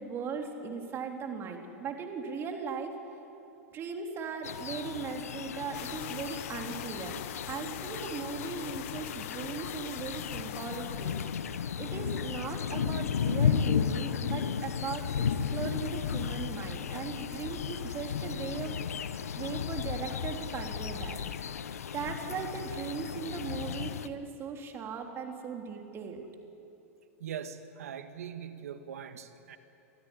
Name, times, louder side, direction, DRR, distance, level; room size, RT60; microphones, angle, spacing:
voice 1, 0.0-2.9 3.7-7.2 7.5-11.2 11.8-15.3 15.5-18.7 19.4-21.6 21.9-26.2, right 5 dB, 30° right, 3 dB, 3.3 m, -38 dB
sound 1, 4.4-24.1, left 7 dB, 85° left, 0.9 m, -34 dB
sound 2, 5.7-12.8, left 14 dB, 60° left, 0.9 m, -44 dB
voice 2, 27.2-29.6, right 8 dB, 80° right, 9 dB, 1.7 m, -41 dB
25.0 x 15.5 x 9.9 m, 2.9 s
hypercardioid pair, 115°, 8 cm